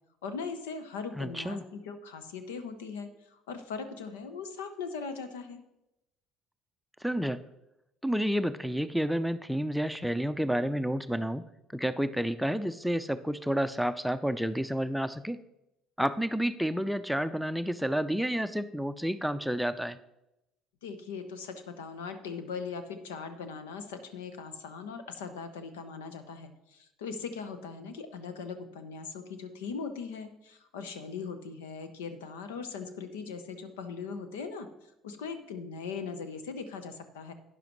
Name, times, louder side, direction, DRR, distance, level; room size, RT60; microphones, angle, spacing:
voice 1, 0.2-5.6 20.8-34.7 35.0-37.3, left 5 dB, 80° left, 10 dB, 0.9 m, -40 dB
voice 2, 1.2-1.6 7.0-7.4 8.0-11.4 11.7-15.4 16.0-20.0, equal, ahead, 11 dB, 0.5 m, -30 dB
12.0 x 9.7 x 3.1 m, 0.89 s
hypercardioid pair, 60°, 0 cm